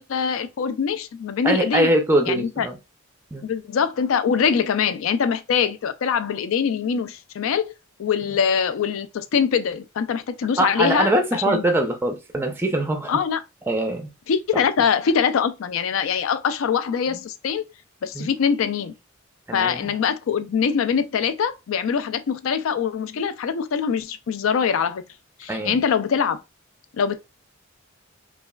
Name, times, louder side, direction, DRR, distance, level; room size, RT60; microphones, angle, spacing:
voice 1, 0.0-1.9 2.3-2.7 3.4-7.7 8.0-11.6 13.1-13.4 14.3-17.6 18.0-18.9 19.5-25.0 25.4-26.4 26.9-27.2, left 7 dB, 70° left, 0.4 m, -23 dB
voice 2, 1.4-2.8 3.3-3.4 10.6-13.1 13.7-14.1 18.2-18.3 19.5-19.9 25.5-25.8, right 1 dB, 10° right, 0.4 m, -22 dB
3.1 x 2.3 x 2.2 m
head